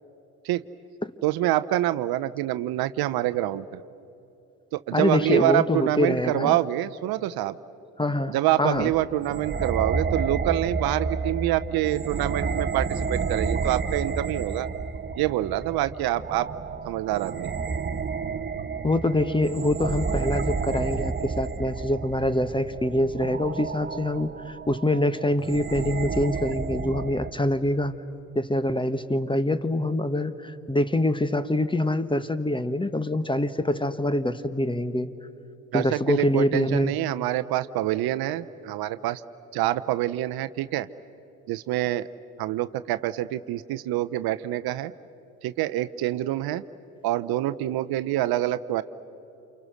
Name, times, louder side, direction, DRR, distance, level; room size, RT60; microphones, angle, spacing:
voice 1, 1.2-3.8 4.7-7.5 8.3-14.7 15.2-16.5 16.8-17.6 35.7-39.2 39.5-40.9 41.5-42.1 42.4-44.9 45.4-46.6 47.0-48.8, right 14 dB, 60° right, 13 dB, 0.8 m, -26 dB
voice 2, 4.9-6.6 8.0-8.9 18.8-28.0 28.3-35.1 35.7-36.9, left 1 dB, 10° left, 13 dB, 1.4 m, -25 dB
sound 1, 8.7-27.3, right 5 dB, 25° right, 1.1 m, -31 dB
29.5 x 29.0 x 6.4 m, 3.0 s
hypercardioid pair, 55°, 42 cm